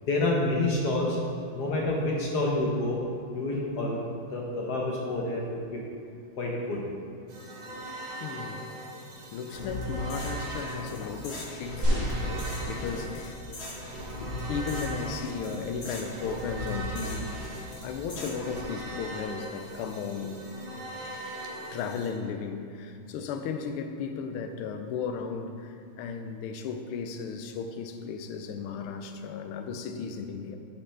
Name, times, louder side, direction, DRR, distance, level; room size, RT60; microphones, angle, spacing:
voice 1, 0.1-1.2 1.5-3.0 3.3-4.0 4.3-5.8 6.4-6.8, left 2 dB, 60° left, -2 dB, 1.2 m, -28 dB
sound 1, 7.3-22.1, right 1 dB, 55° right, 1.8 m, -41 dB
voice 2, 8.2-8.6 9.3-13.4 14.2-17.5 17.8-20.4 21.4-30.6, left 6 dB, 80° left, 6 dB, 1.5 m, -35 dB
sound 2, 9.5-18.7, equal, 40° left, 1.0 m, -38 dB
sound 3, 11.8-13.3 14.1-14.2, right 1 dB, 35° right, 2.0 m, -30 dB
9.8 x 5.9 x 3.3 m, 2.4 s
omnidirectional pair, 2.4 m